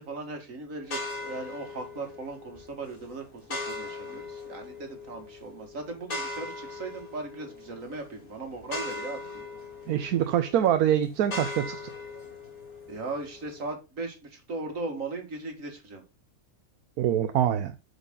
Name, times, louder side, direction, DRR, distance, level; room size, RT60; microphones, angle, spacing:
voice 1, 0.0-9.4 12.9-16.0, right 3 dB, 60° right, 2.3 m, -38 dB
sound 1, 0.8-13.7, left 2 dB, 65° left, 2.2 m, -40 dB
voice 2, 9.9-11.8 17.0-17.7, right 10 dB, 80° right, 1.2 m, -24 dB
8.1 x 5.1 x 3.8 m
omnidirectional pair, 1.5 m